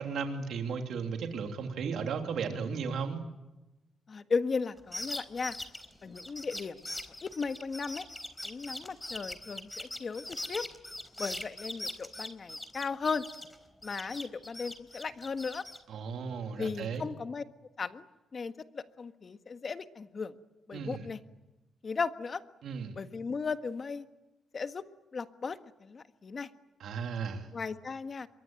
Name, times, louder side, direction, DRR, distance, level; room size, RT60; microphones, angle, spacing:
voice 1, 0.0-3.2 15.9-17.0 20.7-21.1 22.6-22.9 26.8-27.5, right 5 dB, 80° right, 3 dB, 3.1 m, -35 dB
voice 2, 4.1-5.5 6.0-8.1 8.4-10.7 11.2-13.2 13.8-15.6 16.6-17.4 17.8-18.1 18.3-20.3 20.7-21.2 21.8-22.4 22.9-24.0 24.5-24.8 25.1-26.5 27.5-28.3, left 5 dB, 45° left, 9 dB, 1.6 m, -36 dB
sound 1, 4.8-13.6 13.8-15.8, left 1 dB, 10° left, 4.0 m, -41 dB
26.5 x 23.5 x 9.1 m, 1.0 s
cardioid pair, 85°, 0 cm